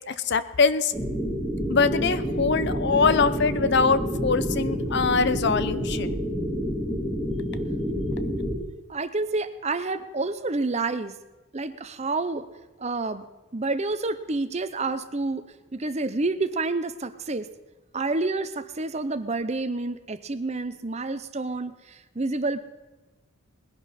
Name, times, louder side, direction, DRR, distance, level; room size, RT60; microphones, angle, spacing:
voice 1, 0.1-0.9 1.7-6.1, left 4 dB, 50° left, 13 dB, 0.6 m, -23 dB
sound 1, 0.9-8.5, equal, 10° left, 2.7 m, -28 dB
voice 2, 8.9-11.1 11.5-12.4 12.8-13.2 13.5-17.5 17.9-22.6, right 3 dB, 30° right, 11 dB, 0.6 m, -29 dB
20.0 x 11.0 x 4.2 m, 1.1 s
head